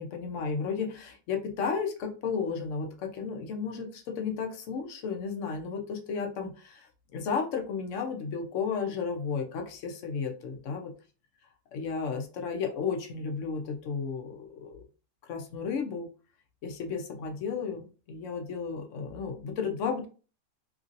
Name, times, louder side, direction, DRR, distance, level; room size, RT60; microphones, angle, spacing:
voice 1, 0.0-6.9 7.1-10.9 11.7-14.8 15.3-16.1 16.6-20.1, left 5 dB, 65° left, 4 dB, 0.9 m, -33 dB
3.0 x 2.6 x 2.5 m, 0.37 s
omnidirectional pair, 1.6 m